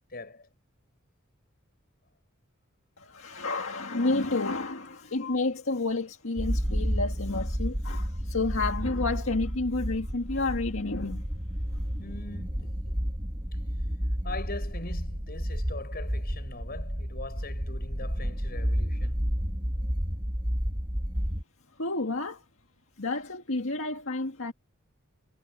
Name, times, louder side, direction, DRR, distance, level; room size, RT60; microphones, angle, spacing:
voice 1, 0.1-0.5 4.9-5.2 12.0-13.0 13.5-13.6 14.2-19.2, left 2 dB, 45° left, 6.8 m, -42 dB
voice 2, 3.0-11.2 11.7-11.8 21.8-22.4 23.0-24.5, left 3 dB, 70° left, 1.9 m, -30 dB
sound 1, 6.4-21.4, equal, 25° right, 2.7 m, -31 dB
head